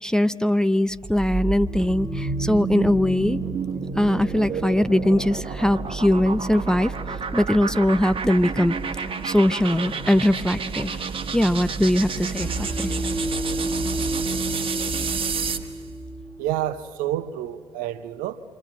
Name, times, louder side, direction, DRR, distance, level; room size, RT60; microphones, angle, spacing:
voice 1, 0.0-3.4 4.0-6.9 7.3-8.8 9.2-10.9 11.3-12.5 12.8-12.9, left 1 dB, 5° left, 0.5 m, -21 dB
sound 1, 1.0-15.7, right 5 dB, 35° right, 1.5 m, -30 dB
sound 2, 1.7-4.7 12.4-16.4, right 1 dB, 90° left, 6.1 m, -32 dB
voice 2, 16.4-18.4, right 12 dB, 60° right, 0.8 m, -29 dB
27.5 x 24.5 x 7.5 m
figure-of-eight pair, 45°, 16 cm